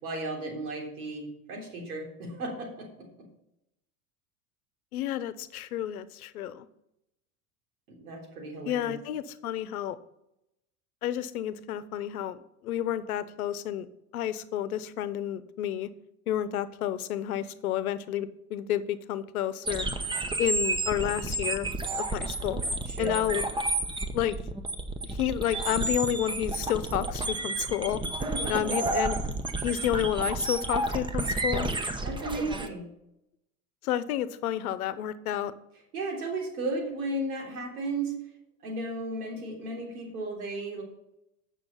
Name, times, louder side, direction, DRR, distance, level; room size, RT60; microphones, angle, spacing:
voice 1, 0.0-3.1 7.9-9.0 22.8-23.2 28.2-28.7 32.0-32.9 35.9-38.1 38.6-40.8, right 2 dB, 80° right, 0 dB, 3.5 m, -35 dB
voice 2, 4.9-6.7 8.7-10.0 11.0-13.9 14.1-15.9 16.3-19.9 20.4-21.7 22.0-22.6 23.0-23.4 24.1-24.4 25.0-28.0 28.5-29.2 29.6-31.7 33.8-35.5, left 11 dB, 80° left, 15 dB, 0.9 m, -30 dB
sound 1, 19.7-32.7, right 2 dB, 10° right, 0.9 m, -31 dB
9.1 x 6.1 x 5.5 m, 0.84 s
hypercardioid pair, 95°, 43 cm